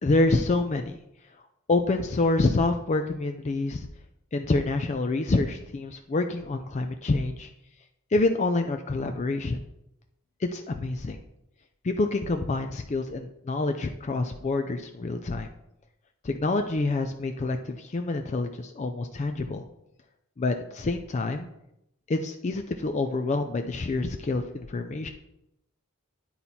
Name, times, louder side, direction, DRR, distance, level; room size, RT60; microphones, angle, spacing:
voice 1, 0.0-1.0 1.7-3.9 4.3-7.5 8.1-9.6 10.4-11.2 11.8-15.5 16.2-19.6 20.4-21.5 22.1-25.1, left 2 dB, 30° left, 6 dB, 0.4 m, -27 dB
10.0 x 4.3 x 4.1 m, 0.84 s
head